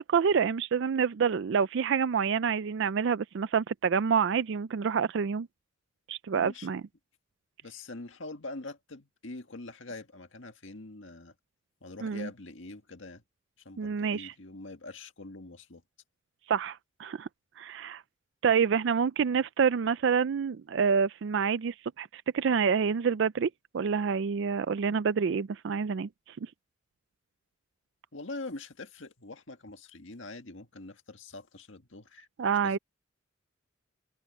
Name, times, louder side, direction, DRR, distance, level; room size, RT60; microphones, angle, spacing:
voice 1, 0.0-5.5 6.1-6.8 12.0-12.3 13.8-14.3 16.5-17.3 17.6-18.0 18.4-26.1 32.4-32.8, right 6 dB, 60° right, 0.4 m, -27 dB
voice 2, 6.3-6.7 7.6-11.3 11.8-13.2 13.7-15.8 28.1-32.3 32.6-32.8, left 2 dB, 70° left, 1.9 m, -44 dB
head